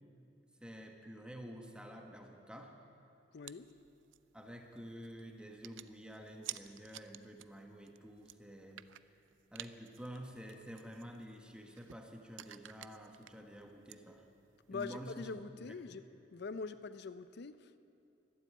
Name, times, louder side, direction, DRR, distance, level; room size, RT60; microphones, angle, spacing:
voice 1, 0.6-2.8 4.3-8.8 9.5-14.2 14.7-15.7, equal, 5° right, 3 dB, 1.2 m, -49 dB
voice 2, 3.3-3.7 14.7-16.0 16.3-17.8, left 4 dB, 60° left, 13 dB, 0.5 m, -43 dB
sound 1, 3.4-15.2, right 14 dB, 80° right, 0.4 m, -54 dB
12.5 x 11.5 x 8.4 m, 2.6 s
head